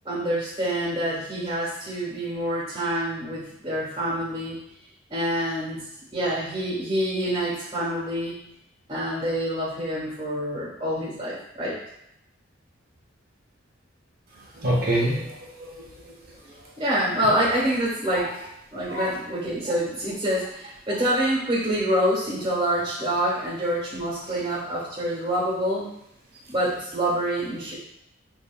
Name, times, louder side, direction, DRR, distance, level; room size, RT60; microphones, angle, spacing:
voice 1, 0.0-4.6 5.1-5.8 6.1-8.4 8.9-11.8 16.8-18.5 18.7-25.9 26.5-27.8, equal, 20° right, -7 dB, 1.2 m, -26 dB
voice 2, 14.5-16.1 18.9-19.1 24.3-24.4, right 1 dB, 45° right, -3 dB, 0.8 m, -27 dB
5.4 x 2.7 x 2.3 m, 0.78 s
head